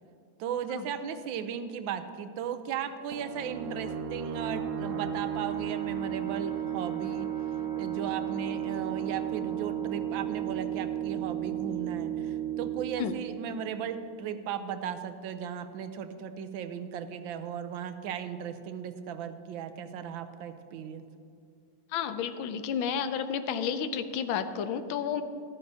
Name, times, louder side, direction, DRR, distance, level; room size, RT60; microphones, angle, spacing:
voice 1, 0.4-7.3 7.8-21.0, right 8 dB, 80° right, 9 dB, 1.4 m, -36 dB
sound 1, 3.1-14.4, right 10 dB, 60° right, 0.8 m, -34 dB
voice 2, 21.9-25.2, left 7 dB, 85° left, 10 dB, 1.4 m, -31 dB
14.0 x 12.5 x 2.8 m, 2.3 s
omnidirectional pair, 2.1 m